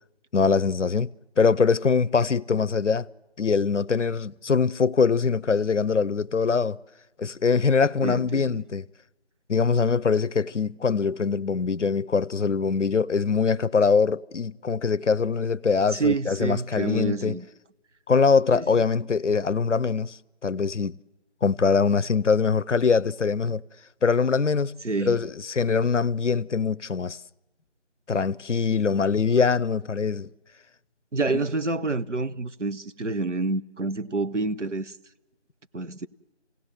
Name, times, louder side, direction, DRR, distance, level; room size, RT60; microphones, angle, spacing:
voice 1, 0.3-1.1 1.4-3.1 3.4-6.8 7.2-8.9 9.5-17.4 18.1-21.0 21.4-23.6 24.0-24.7 25.0-27.2 28.1-30.3 31.3-31.4, left 5 dB, 85° left, 0.6 m, -23 dB
voice 2, 8.0-8.6 15.9-17.4 18.5-18.8 24.8-25.2 31.1-35.0 35.7-36.1, right 3 dB, 90° right, 0.9 m, -28 dB
27.5 x 17.0 x 7.7 m
figure-of-eight pair, 175°, 35 cm